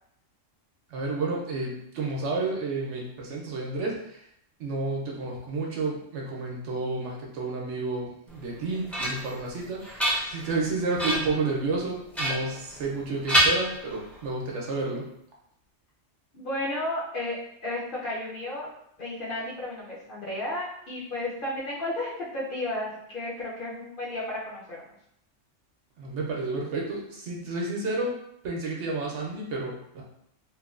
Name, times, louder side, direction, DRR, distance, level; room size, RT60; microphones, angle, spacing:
voice 1, 0.9-4.2 4.6-10.0 10.3-15.1 26.0-30.0, right 3 dB, 70° right, -2 dB, 0.9 m, -31 dB
sound 1, 8.4-9.4 9.8-10.6 11.0-11.4 12.1-13.0 13.3-14.2, equal, ahead, 0.4 m, -27 dB
voice 2, 16.3-18.7 19.0-24.8, left 1 dB, 55° left, -6 dB, 0.7 m, -33 dB
3.0 x 2.2 x 2.4 m, 0.74 s
omnidirectional pair, 1.3 m